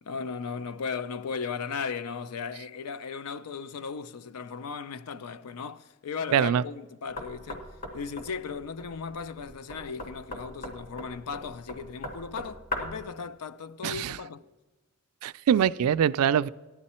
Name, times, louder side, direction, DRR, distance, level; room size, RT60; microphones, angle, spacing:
voice 1, 0.0-7.6 7.9-14.4, left 5 dB, 85° left, 0.5 m, -36 dB
voice 2, 6.3-6.6 13.8-14.2 15.2-16.5, right 8 dB, 70° right, 0.3 m, -23 dB
Knock, 7.2-13.1, left 2 dB, 40° left, 2.1 m, -39 dB
15.0 x 11.0 x 4.3 m
head